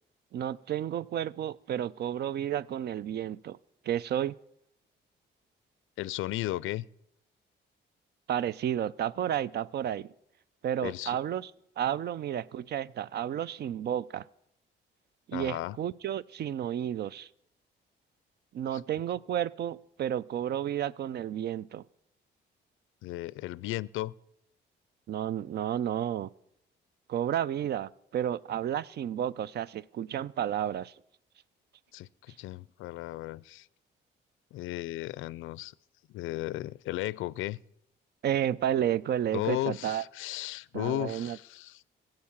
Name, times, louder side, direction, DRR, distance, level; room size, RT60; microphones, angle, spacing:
voice 1, 0.3-3.6 3.9-4.3 8.3-10.1 10.6-11.5 11.8-14.3 15.3-17.3 18.5-21.8 25.1-26.3 27.1-30.9 38.2-40.0 40.7-41.4, right 10 dB, 55° right, 0.4 m, -31 dB
voice 2, 6.0-6.9 10.8-11.2 15.3-15.8 18.7-18.8 23.0-24.1 31.9-33.7 34.5-35.7 36.1-37.6 39.3-41.8, left 16 dB, 85° left, 0.4 m, -35 dB
16.0 x 7.7 x 7.2 m
cardioid pair, 90°, 20 cm